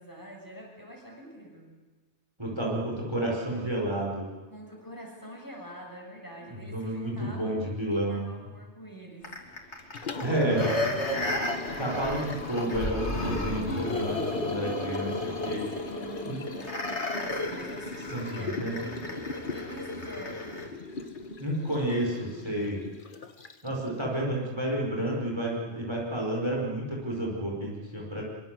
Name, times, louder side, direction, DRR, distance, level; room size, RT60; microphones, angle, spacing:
voice 1, 0.0-1.7 4.5-7.6 7.9-9.3 15.4-20.6, equal, 15° left, -1 dB, 7.0 m, -46 dB
voice 2, 2.4-4.3 6.5-8.3 10.2-10.7 11.4-15.6 16.2-16.4 18.1-18.8 21.4-22.8 23.6-28.2, right 1 dB, 25° right, -2 dB, 5.7 m, -31 dB
sound 1, 9.2-20.7 21.1-21.2, left 1 dB, 75° left, 3.7 m, -33 dB
Liquid, 9.8-23.9, left 3 dB, 45° left, 1.6 m, -39 dB
25.0 x 24.5 x 8.0 m, 1.3 s
omnidirectional pair, 1.2 m